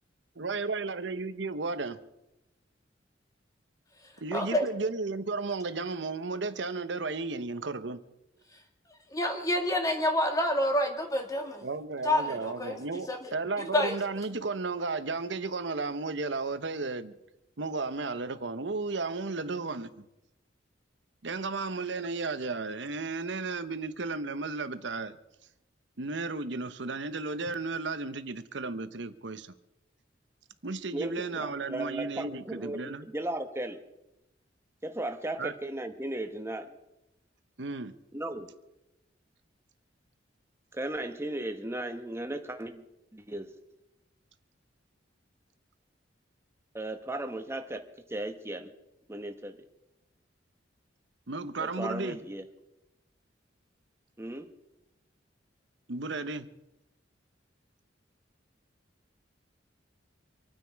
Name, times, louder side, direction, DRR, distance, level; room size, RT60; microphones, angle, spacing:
voice 1, 0.4-2.0 4.2-8.0 11.6-17.1 17.6-20.0 21.2-25.1 26.0-29.5 30.6-33.1 35.4-35.5 37.6-37.9 51.3-52.2 55.9-56.5, right 3 dB, 70° right, 0.9 m, -34 dB
voice 2, 4.3-4.7 9.1-11.6 12.0-12.8 13.1-13.3 13.7-13.9, left 1 dB, 20° left, 2.1 m, -28 dB
voice 3, 30.9-32.8 33.1-33.8 34.8-36.8 38.1-38.5 40.7-42.8 43.1-43.5 46.7-47.8 48.1-48.7 49.1-49.5 51.6-52.4 54.2-54.4, right 1 dB, 15° right, 1.1 m, -36 dB
26.0 x 9.5 x 4.7 m
head